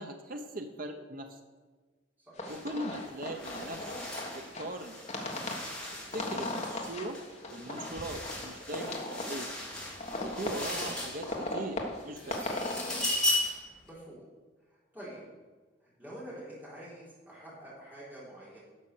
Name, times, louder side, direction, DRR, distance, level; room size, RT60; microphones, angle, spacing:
voice 1, 0.0-1.4 2.5-3.9 4.3-5.0 6.1-7.2 7.5-9.5 10.2-12.4, right 1 dB, 50° right, 5 dB, 0.8 m, -40 dB
sound 1, 2.3-13.1, left 2 dB, 40° left, 1.4 m, -38 dB
sound 2, 2.5-2.6 2.9-11.6 12.0-13.7, left 1 dB, 5° left, 2.5 m, -37 dB
voice 2, 13.7-14.3 14.7-15.2 15.8-18.6, right 1 dB, 10° right, -8 dB, 3.6 m, -47 dB
11.0 x 6.5 x 6.7 m, 1.4 s
head